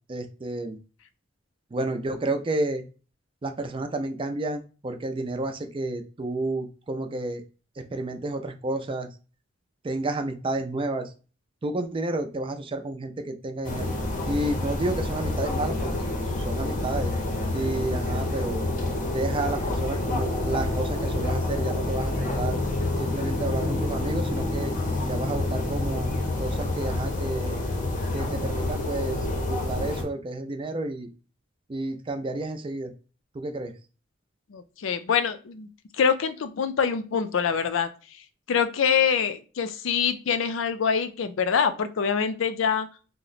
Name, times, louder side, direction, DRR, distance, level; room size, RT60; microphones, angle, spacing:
voice 1, 0.1-0.8 1.7-2.8 3.4-7.4 7.8-9.1 9.8-11.1 11.6-13.9 14.3-16.1 16.4-17.1 17.5-18.6 19.1-22.6 23.0-24.7 25.0-26.1 26.4-27.6 28.1-31.1 31.7-32.9 33.3-33.7, right 2 dB, 25° right, 6 dB, 0.4 m, -31 dB
sound 1, 13.6-30.0, left 2 dB, 40° left, 0.7 m, -28 dB
voice 2, 34.5-35.7 36.0-37.9 38.5-42.9, left 7 dB, 75° left, 10 dB, 0.4 m, -25 dB
2.9 x 2.1 x 4.0 m, 0.35 s
head